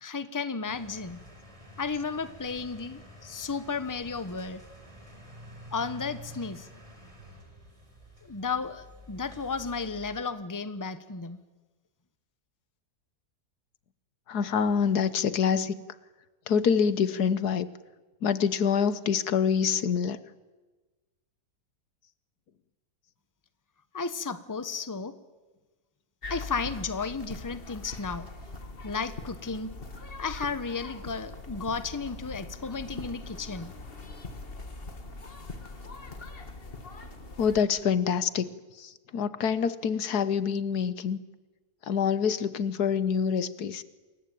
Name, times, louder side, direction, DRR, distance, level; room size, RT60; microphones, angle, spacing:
voice 1, 0.0-1.2 1.8-4.6 5.7-6.7 8.2-11.4 23.9-25.1 26.3-28.3 28.8-29.7 30.2-33.7, left 4 dB, 15° left, 12 dB, 1.1 m, -33 dB
sound 1, 0.7-10.2, equal, 20° right, 4.6 m, -49 dB
voice 2, 14.3-15.7 16.5-17.7 18.2-20.2 37.4-38.5 38.8-41.2 41.8-43.8, left 7 dB, 75° left, 15 dB, 1.6 m, -26 dB
sound 2, 26.2-37.6, left 3 dB, 35° left, 1.9 m, -42 dB
28.0 x 22.0 x 9.1 m, 1.2 s
omnidirectional pair, 1.7 m